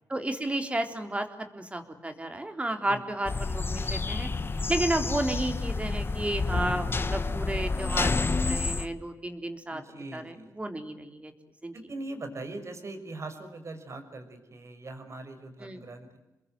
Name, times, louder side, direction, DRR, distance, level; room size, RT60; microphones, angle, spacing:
voice 1, 0.1-1.3 1.5-4.3 4.7-11.3 11.6-11.7 15.6-15.8, right 1 dB, 20° right, 7 dB, 3.7 m, -32 dB
sound 1, 3.2-8.9, left 3 dB, 35° left, 1.5 m, -29 dB
voice 2, 9.7-10.6 11.7-16.2, right 2 dB, 45° right, 7 dB, 6.0 m, -41 dB
28.5 x 22.0 x 9.3 m, 0.96 s
cardioid pair, 95°, 7 cm